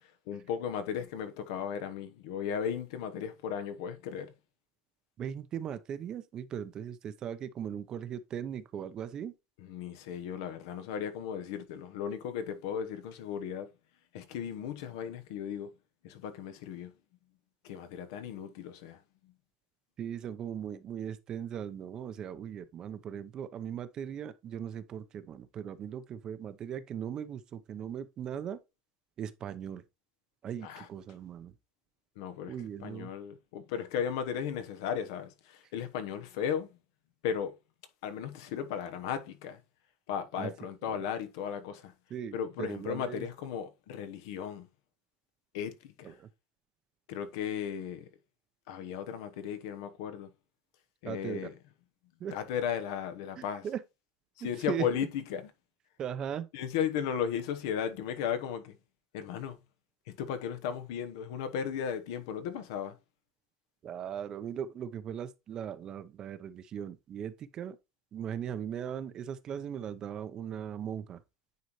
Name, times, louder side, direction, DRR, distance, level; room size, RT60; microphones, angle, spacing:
voice 1, 0.3-4.3 9.6-13.7 14.1-15.7 16.0-16.9 17.6-19.0 30.6-30.9 32.2-32.5 32.8-36.7 37.2-37.6 38.0-39.6 40.1-41.9 42.3-44.7 45.5-46.1 47.1-48.1 48.7-50.3 51.0-51.5 52.3-53.6 54.4-55.5 56.5-58.8 59.1-59.6 60.1-63.0, left 8 dB, 80° left, 1.0 m, -35 dB
voice 2, 5.2-9.3 20.0-28.6 29.2-29.8 30.4-31.5 32.5-33.1 40.3-40.5 40.8-41.0 42.1-43.3 46.0-46.3 51.0-51.5 52.2-52.3 53.4-53.8 54.4-55.1 56.0-56.5 63.8-67.8 68.1-71.2, right 9 dB, 35° right, 0.7 m, -38 dB
9.4 x 4.0 x 3.0 m
cardioid pair, 150°, 2 cm